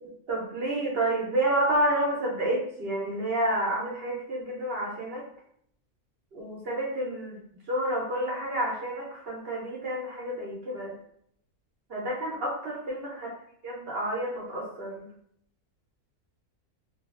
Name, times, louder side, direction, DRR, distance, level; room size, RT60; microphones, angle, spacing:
voice 1, 0.0-5.2 6.3-7.4 7.7-10.9 11.9-13.3 13.6-15.1, right 1 dB, 55° right, -4 dB, 0.7 m, -29 dB
2.6 x 2.4 x 2.4 m, 0.68 s
omnidirectional pair, 1.6 m